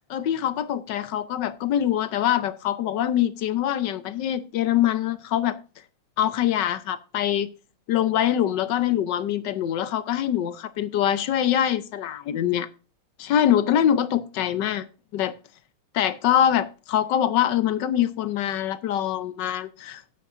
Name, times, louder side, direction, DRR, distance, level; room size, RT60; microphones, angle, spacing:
voice 1, 0.1-5.6 6.2-7.5 7.9-12.7 13.2-14.9 15.1-15.3 15.9-20.0, left 10 dB, 65° left, 1.2 m, -24 dB
12.5 x 9.1 x 2.5 m
omnidirectional pair, 2.3 m